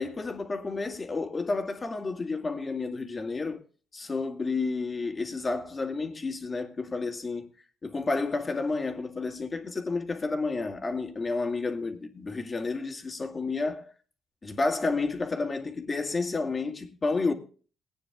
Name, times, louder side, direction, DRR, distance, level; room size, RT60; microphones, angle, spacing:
voice 1, 0.0-3.6 3.9-7.5 7.8-13.9 14.4-17.3, left 3 dB, 30° left, 2.1 m, -31 dB
20.0 x 9.5 x 2.3 m
cardioid pair, 90°, 0 cm